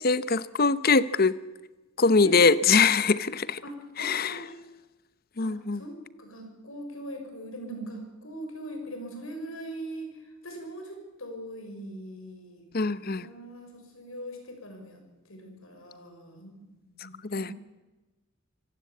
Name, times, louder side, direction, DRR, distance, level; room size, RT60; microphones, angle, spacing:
voice 1, 0.0-1.4 2.0-3.6 4.0-4.4 5.4-5.8 12.7-13.3 17.2-17.5, left 4 dB, 45° left, 16 dB, 0.8 m, -23 dB
voice 2, 3.6-4.6 5.4-10.2 10.4-16.6 17.0-17.5, right 1 dB, 90° left, 4 dB, 6.2 m, -41 dB
26.0 x 16.0 x 8.5 m, 1.1 s
head